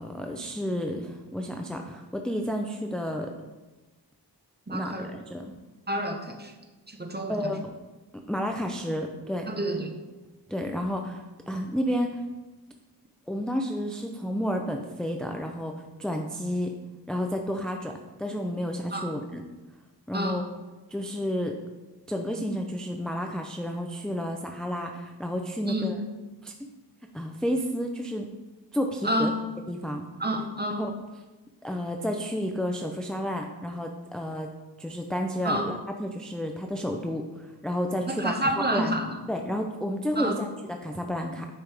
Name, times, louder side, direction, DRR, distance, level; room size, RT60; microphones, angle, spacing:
voice 1, 0.0-3.3 4.7-5.5 7.3-7.8 8.3-9.5 10.5-12.2 13.3-16.7 17.1-17.9 18.2-19.4 20.1-20.4 20.9-21.6 22.1-26.0 26.4-26.7 27.1-28.3 28.7-29.3 29.7-30.1 30.8-30.9 31.6-34.5 34.8-39.0 39.3-41.5, equal, ahead, 3 dB, 0.5 m, -31 dB
voice 2, 4.7-5.1 5.9-6.5 6.9-7.5 9.5-9.9 18.9-19.1 20.1-20.5 25.6-26.0 29.0-29.3 30.2-30.9 35.4-35.7 38.1-39.2 40.2-40.4, right 1 dB, 25° right, 4 dB, 1.0 m, -29 dB
10.5 x 5.3 x 3.4 m, 1.2 s
wide cardioid pair, 70°, 41 cm